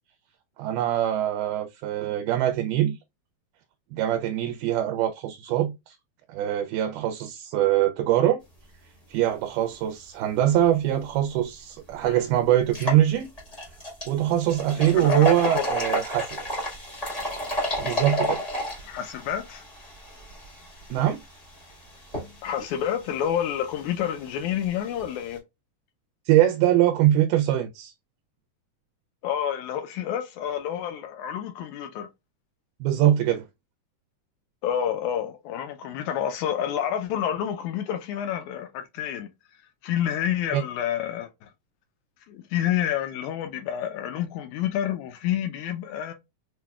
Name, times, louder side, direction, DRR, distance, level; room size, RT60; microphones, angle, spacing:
voice 1, 0.6-3.0 3.9-6.0 6.3-8.4 9.1-13.3 14.1-16.4 17.8-18.4 20.9-21.2 26.3-27.9 32.8-33.5 40.5-40.6, right 12 dB, 80° right, 2.0 m, -23 dB
sound 1, 11.3-11.4 11.9-12.0 12.6-25.4, equal, 45° left, 0.5 m, -33 dB
voice 2, 14.8-15.6 18.8-19.6 22.4-25.4 29.2-32.1 34.6-39.3 39.8-41.5 42.3-46.1, left 10 dB, 80° left, 1.8 m, -29 dB
5.8 x 2.1 x 2.3 m
omnidirectional pair, 3.7 m